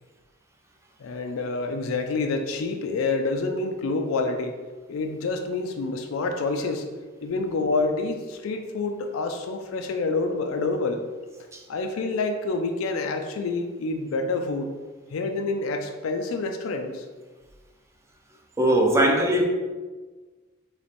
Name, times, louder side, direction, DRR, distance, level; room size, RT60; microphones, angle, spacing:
voice 1, 1.0-4.6 4.9-6.9 7.2-11.0 11.7-14.7 15.1-17.1, left 3 dB, 80° left, 0.4 m, -27 dB
voice 2, 18.6-19.4, right 1 dB, 15° right, 0.5 m, -19 dB
3.4 x 3.2 x 4.1 m
head